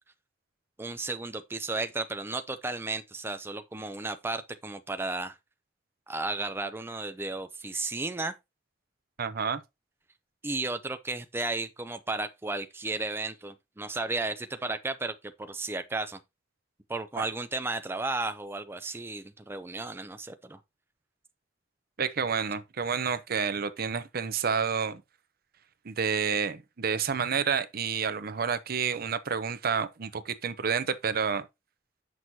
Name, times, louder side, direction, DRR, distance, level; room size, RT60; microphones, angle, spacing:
voice 1, 0.8-5.4 6.1-8.3 10.4-15.1 15.4-16.2 16.9-20.6, right 3 dB, 15° right, 0.4 m, -34 dB
voice 2, 9.2-9.6 17.2-17.3 22.0-25.0 25.8-31.4, right 6 dB, 55° right, 0.7 m, -29 dB
7.7 x 6.2 x 2.7 m
head